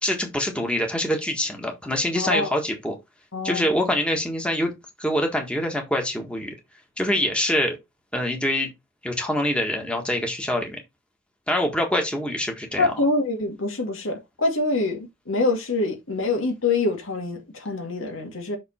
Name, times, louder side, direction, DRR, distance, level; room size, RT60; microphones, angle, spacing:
voice 1, 0.0-3.0 3.4-4.7 5.0-6.5 7.0-7.8 8.1-8.7 9.0-10.8 11.5-12.9, left 1 dB, 5° left, 1.6 m, -25 dB
voice 2, 2.1-2.5 3.3-3.7 12.8-18.6, left 3 dB, 75° left, 2.1 m, -25 dB
5.9 x 5.3 x 4.3 m
head